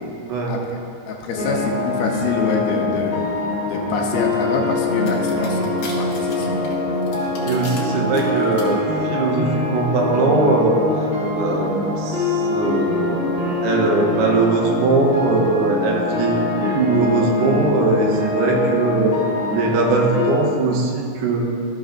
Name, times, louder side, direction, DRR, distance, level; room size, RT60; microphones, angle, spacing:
voice 1, 0.2-0.6 7.5-8.9 9.1-11.1 11.3-19.2 19.5-21.4, right 3 dB, 80° right, 0 dB, 2.9 m, -20 dB
voice 2, 1.1-3.2 3.7-5.7 6.0-6.7, left 4 dB, 80° left, 0 dB, 2.5 m, -25 dB
sound 1, 1.3-20.3, left 2 dB, 40° left, 1.1 m, -24 dB
sound 2, 5.1-7.8 8.1-8.6, left 4 dB, 60° left, 2.5 m, -37 dB
13.0 x 6.4 x 2.5 m, 2.4 s
omnidirectional pair, 4.7 m